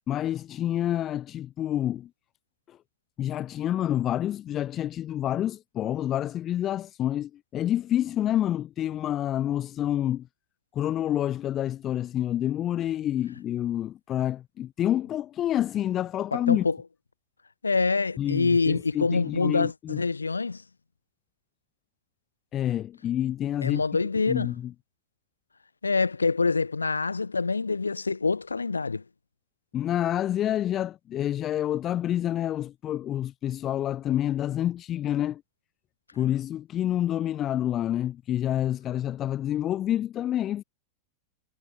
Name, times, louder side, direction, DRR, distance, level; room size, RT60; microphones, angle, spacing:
voice 1, 0.1-2.1 2.7-2.8 3.2-10.3 10.7-16.7 18.2-20.0 22.5-24.0 24.3-24.7 29.7-35.4 36.1-40.6, left 11 dB, 30° left, 0.4 m, -28 dB
voice 2, 16.3-16.8 17.6-20.6 23.6-24.5 25.8-29.0, left 4 dB, 80° left, 2.1 m, -26 dB
figure-of-eight pair, 90°, 0 cm